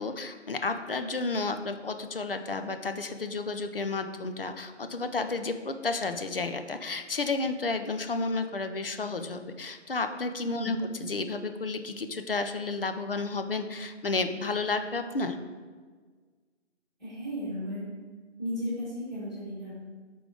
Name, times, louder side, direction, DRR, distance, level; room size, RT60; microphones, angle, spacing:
voice 1, 0.0-15.4, left 3 dB, 50° left, 8 dB, 0.4 m, -32 dB
voice 2, 10.5-10.9 17.0-17.8 18.4-19.8, equal, ahead, -14 dB, 1.6 m, -34 dB
6.8 x 3.8 x 3.7 m, 1.5 s
figure-of-eight pair, 160°, 37 cm